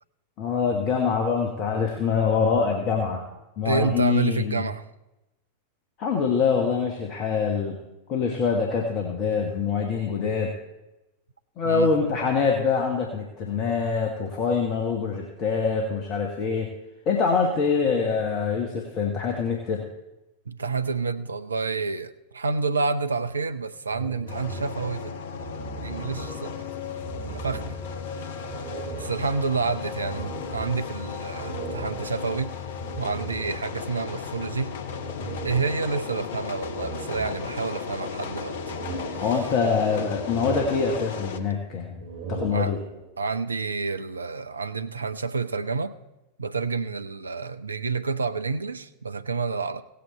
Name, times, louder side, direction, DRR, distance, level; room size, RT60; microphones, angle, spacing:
voice 1, 0.4-3.2 3.6-4.6 6.0-7.8 8.1-10.5 11.6-16.7 17.0-19.9 39.2-42.8, left 5 dB, 35° left, 1 dB, 1.4 m, -25 dB
voice 2, 3.6-4.8 11.6-11.9 20.5-26.7 27.2-27.8 29.0-32.5 33.0-34.7 35.4-38.8 39.2-39.3 42.5-42.7 43.2-45.9 46.4-49.8, right 4 dB, 75° right, 12 dB, 0.5 m, -29 dB
sound 1, 23.9-26.7 27.0-28.1 28.5-33.9 34.9-36.2 36.6-37.9 38.3-39.8 40.1-41.4 41.9-43.2, right 5 dB, 50° right, 2.8 m, -39 dB
sound 2, 24.3-41.4, left 6 dB, 55° left, 0.9 m, -35 dB
17.0 x 8.4 x 4.3 m, 0.97 s
figure-of-eight pair, 90°, 0 cm